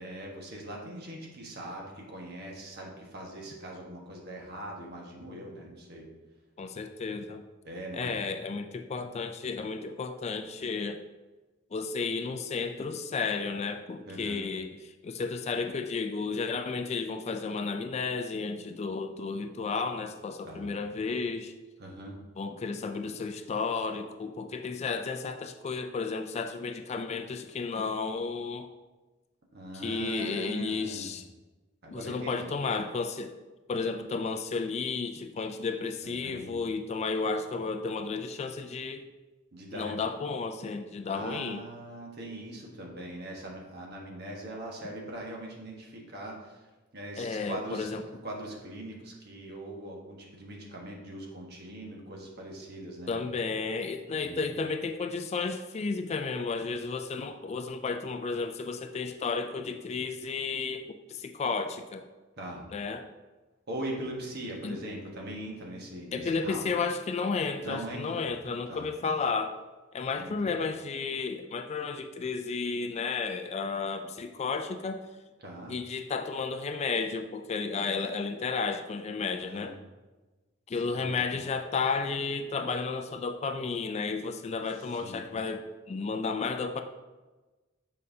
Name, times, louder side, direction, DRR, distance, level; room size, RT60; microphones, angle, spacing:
voice 1, 0.0-6.1 7.6-8.2 14.1-14.5 20.4-20.7 21.8-22.2 29.5-31.1 31.8-32.5 36.0-36.5 39.5-40.0 41.1-46.7 46.9-47.9 48.2-53.1 54.1-54.4 62.4-62.7 63.7-66.7 67.6-68.3 68.7-68.9 70.1-70.4 75.4-75.8 79.4-79.8 80.7-81.3 84.9-85.2, right 1 dB, 50° right, -1 dB, 1.3 m, -41 dB
voice 2, 6.6-7.4 7.9-11.0 11.7-21.5 22.4-28.7 29.8-31.2 31.9-33.3 33.7-39.0 39.7-41.6 47.2-48.0 53.1-62.1 62.7-63.1 64.6-64.8 66.1-69.6 69.9-75.1 75.7-79.8 80.7-86.8, left 4 dB, 30° left, 7 dB, 0.3 m, -33 dB
7.6 x 5.4 x 2.7 m, 1.2 s
head